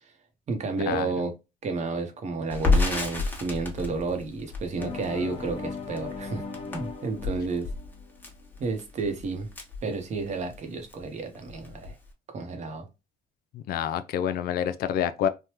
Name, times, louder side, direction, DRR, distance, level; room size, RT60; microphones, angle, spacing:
voice 1, 0.5-1.3 1.6-6.4 6.7-7.7 8.6-9.5 9.8-12.0 12.3-12.9, right 3 dB, 45° right, 0.8 m, -31 dB
Crackle, 2.5-10.6 10.9-11.0 11.3-12.1, left 3 dB, 10° left, 1.0 m, -30 dB
sound 1, 4.8-8.6, left 4 dB, 35° left, 1.0 m, -38 dB
voice 2, 13.5-15.3, left 9 dB, 65° left, 0.4 m, -27 dB
3.3 x 2.1 x 2.8 m
cardioid pair, 110°, 17 cm